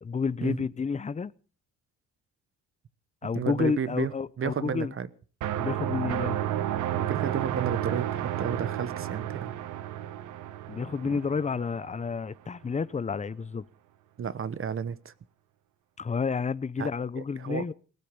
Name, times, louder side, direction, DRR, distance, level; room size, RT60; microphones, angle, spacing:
voice 1, 0.0-1.3 3.2-4.9 5.6-6.4 10.7-13.6 16.0-17.7, left 5 dB, 25° left, 0.7 m, -30 dB
voice 2, 3.3-4.1 4.4-5.1 7.1-9.5 11.0-11.2 14.2-15.1 16.8-16.9 17.4-17.6, right 7 dB, 45° right, 1.1 m, -32 dB
sound 1, 5.4-12.1, right 11 dB, 85° right, 1.1 m, -32 dB
18.0 x 13.5 x 5.4 m
cardioid pair, 90°, 30 cm